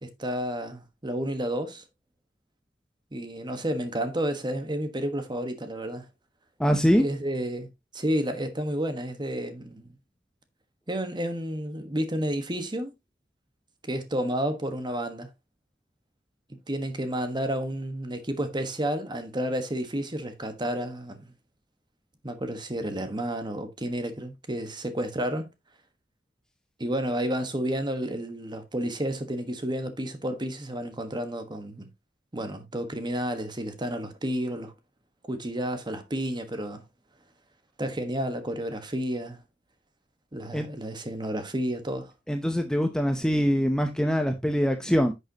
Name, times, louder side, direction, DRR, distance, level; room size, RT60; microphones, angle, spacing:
voice 1, 0.0-1.8 3.1-6.1 6.9-9.9 10.9-12.9 13.8-15.3 16.7-21.3 22.2-25.5 26.8-31.9 32.3-34.7 35.3-36.8 37.8-39.4 40.3-42.1, right 1 dB, 25° right, 1.3 m, -31 dB
voice 2, 6.6-7.1 40.5-40.7 42.3-45.1, equal, 5° left, 0.8 m, -23 dB
10.0 x 6.6 x 2.9 m
head